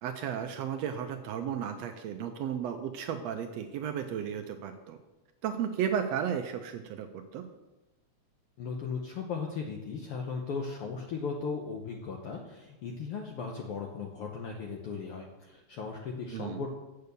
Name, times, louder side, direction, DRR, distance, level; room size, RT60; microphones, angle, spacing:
voice 1, 0.0-5.0 5.4-7.5 16.3-16.6, right 8 dB, 75° right, 7 dB, 1.6 m, -34 dB
voice 2, 8.6-16.7, left 5 dB, 70° left, 1 dB, 1.4 m, -37 dB
8.0 x 6.7 x 6.8 m, 1.0 s
omnidirectional pair, 3.5 m